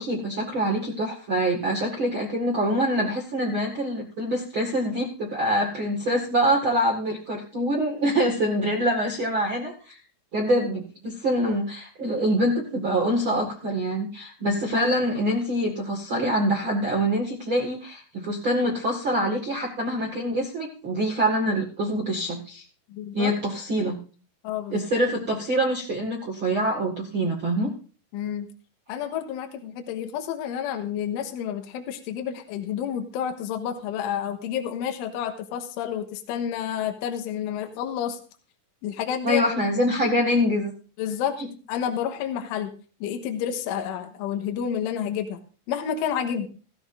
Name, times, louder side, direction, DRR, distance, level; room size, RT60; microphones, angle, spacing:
voice 1, 0.0-10.0 10.3-22.6 23.1-24.0 24.7-27.7 39.2-40.7, equal, 75° right, -1 dB, 1.1 m, -25 dB
voice 2, 22.9-23.3 24.4-24.8 28.1-28.5 28.9-38.2 38.8-39.4 41.0-41.4 41.7-42.7 43.0-45.4 45.7-46.5, left 9 dB, 80° left, 5 dB, 3.6 m, -29 dB
16.0 x 16.0 x 2.7 m, 0.38 s
omnidirectional pair, 5.9 m